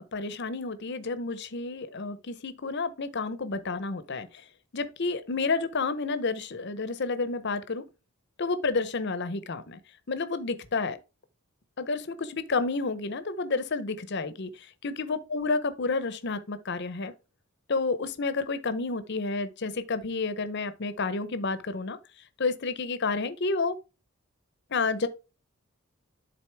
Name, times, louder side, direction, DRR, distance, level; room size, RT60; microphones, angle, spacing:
voice 1, 0.0-4.4 4.7-7.8 8.4-9.8 10.1-11.0 11.8-17.1 17.7-22.0 22.4-23.8 24.7-25.1, left 3 dB, 50° left, 0.7 m, -30 dB
10.5 x 4.0 x 3.4 m
head